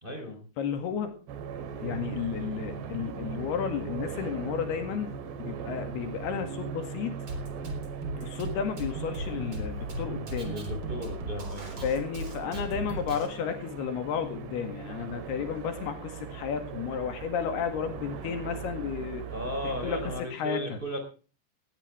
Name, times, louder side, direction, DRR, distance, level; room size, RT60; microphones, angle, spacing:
voice 1, 0.0-0.4 10.5-11.8 19.3-21.0, equal, 15° right, 5 dB, 3.0 m, -35 dB
voice 2, 0.6-1.2 1.8-5.1 5.4-7.2 8.2-10.6 11.8-19.2 19.6-20.8, left 7 dB, 70° left, 7 dB, 3.9 m, -32 dB
sound 1, 1.3-20.2, right 7 dB, 80° right, 3.9 m, -40 dB
Drum kit, 7.3-13.3, right 2 dB, 30° right, 4.1 m, -36 dB
19.5 x 14.0 x 3.3 m, 0.37 s
omnidirectional pair, 4.9 m